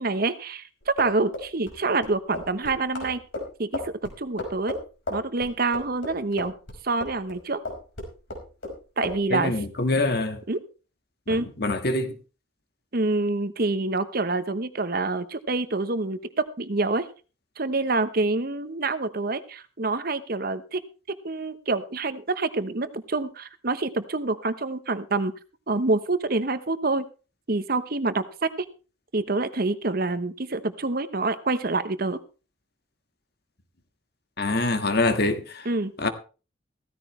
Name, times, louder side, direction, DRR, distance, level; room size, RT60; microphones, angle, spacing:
voice 1, 0.0-3.2 3.6-4.8 5.1-6.5 6.8-7.6 9.0-9.5 10.5-10.6 11.3-11.5 12.9-17.1 17.6-20.8 21.2-25.3 25.7-27.1 27.5-28.7 29.1-32.2 35.6-35.9, right 3 dB, 50° right, 1.0 m, -26 dB
sound 1, 0.8-7.4 7.7-8.8 9.0-9.2, left 2 dB, 80° left, 5.1 m, -34 dB
voice 2, 9.3-10.4 11.3-12.2 34.4-35.7 36.0-36.1, left 2 dB, 55° left, 1.6 m, -25 dB
15.5 x 14.5 x 3.2 m
head